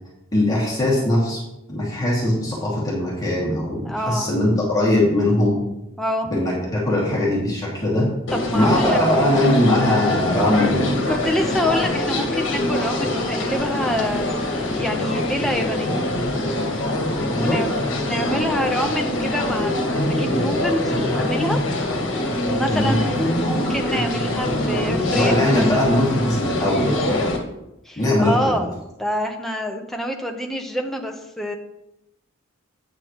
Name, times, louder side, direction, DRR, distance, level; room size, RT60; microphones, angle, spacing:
voice 1, 0.3-1.4 1.7-5.6 6.2-8.1 8.5-10.9 17.3-17.6 22.7-23.0 25.1-27.1 28.0-28.7, left 1 dB, 20° left, -5 dB, 2.4 m, -20 dB
voice 2, 3.8-4.3 6.0-6.3 8.3-9.3 11.1-14.4 14.7-16.0 17.4-21.6 22.5-26.0 27.9-28.7 29.0-31.6, equal, ahead, 2 dB, 0.9 m, -26 dB
sound 1, 8.3-27.4, left 1 dB, 60° left, 1.6 m, -24 dB
8.8 x 8.7 x 3.1 m, 0.88 s
head